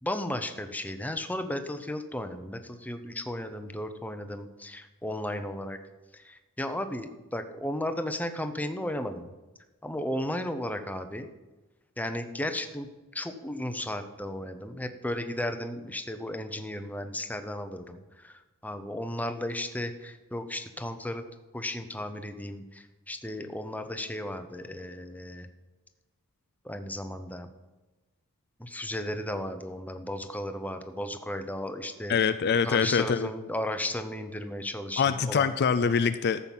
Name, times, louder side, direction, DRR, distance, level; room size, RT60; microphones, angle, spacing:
voice 1, 0.0-5.8 6.1-9.3 9.8-11.3 12.0-12.9 13.1-21.2 21.5-25.5 26.6-27.5 28.6-32.2 32.6-35.5, left 1 dB, 5° left, 8 dB, 0.8 m, -34 dB
voice 2, 32.1-33.3 35.0-36.4, left 6 dB, 50° left, 12 dB, 0.4 m, -24 dB
14.0 x 5.7 x 7.3 m, 1.1 s
head